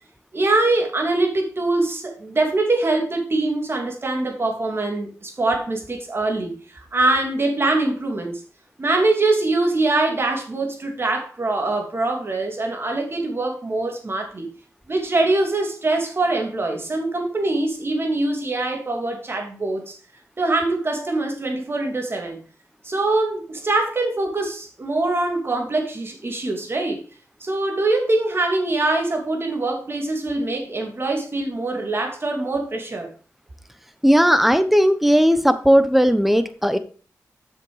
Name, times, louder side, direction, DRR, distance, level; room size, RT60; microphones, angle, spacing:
voice 1, 0.3-8.4 8.8-14.5 14.9-20.0 20.4-22.4 22.8-27.0 27.4-33.1, right 2 dB, 40° right, 2 dB, 2.8 m, -23 dB
voice 2, 34.0-36.8, equal, 5° right, 11 dB, 1.0 m, -16 dB
7.4 x 6.7 x 4.9 m, 0.38 s
cardioid pair, 70°, 6 cm